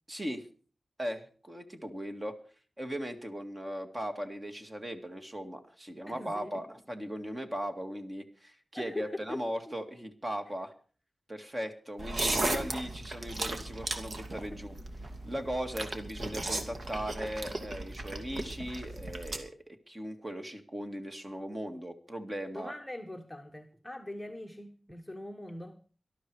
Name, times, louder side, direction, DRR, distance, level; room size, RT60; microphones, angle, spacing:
voice 1, 0.1-0.4 1.0-2.3 2.8-10.7 11.3-14.8 15.3-22.7, equal, 25° right, 2.2 m, -38 dB
voice 2, 6.1-6.6 8.7-9.7 22.5-25.8, left 1 dB, 5° left, 1.4 m, -42 dB
sound 1, 12.0-19.4, right 2 dB, 55° right, 2.4 m, -36 dB
18.5 x 12.5 x 4.8 m
wide cardioid pair, 105°, 0 cm